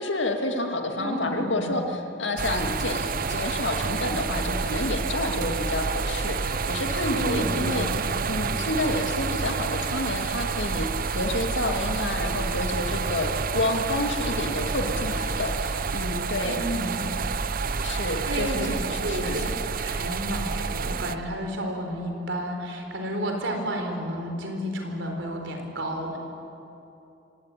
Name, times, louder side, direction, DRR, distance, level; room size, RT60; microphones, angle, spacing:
voice 1, 0.0-7.9 8.3-16.6 17.8-19.5, left 2 dB, 75° left, 4 dB, 2.2 m, -29 dB
voice 2, 1.0-1.8 7.1-8.3 16.4-17.0 18.3-18.7 19.0-19.4 19.8-26.2, equal, 80° right, 3 dB, 4.0 m, -31 dB
sound 1, 2.4-21.2, right 4 dB, 50° right, 0.7 m, -29 dB
25.5 x 17.0 x 9.0 m, 2.9 s
head